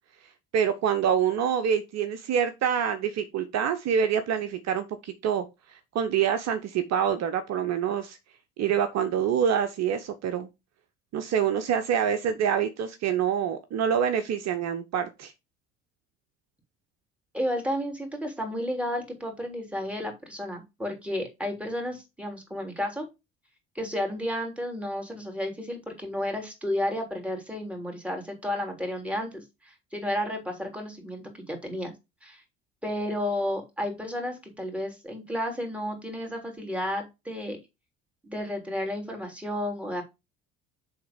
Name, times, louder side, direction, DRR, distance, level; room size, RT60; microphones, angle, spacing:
voice 1, 0.5-8.2 8.6-10.5 11.1-15.3, right 8 dB, 50° right, 1.0 m, -26 dB
voice 2, 17.3-23.1 23.8-31.9 32.2-32.4 32.8-37.6 38.2-40.0, left 1 dB, 5° right, 3.3 m, -32 dB
7.7 x 3.7 x 5.2 m
hypercardioid pair, 65°, 33 cm